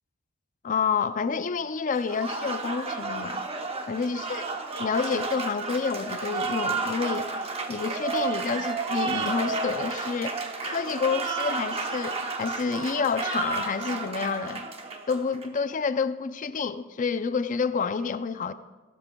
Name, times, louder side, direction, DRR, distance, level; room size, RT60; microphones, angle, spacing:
voice 1, 0.6-3.4 3.9-4.5 4.8-7.3 7.7-14.7 15.1-18.5, left 5 dB, 40° left, 12 dB, 0.4 m, -29 dB
Applause, 1.9-15.6, right 4 dB, 30° right, 0.9 m, -32 dB
16.0 x 12.5 x 2.3 m, 1.3 s
head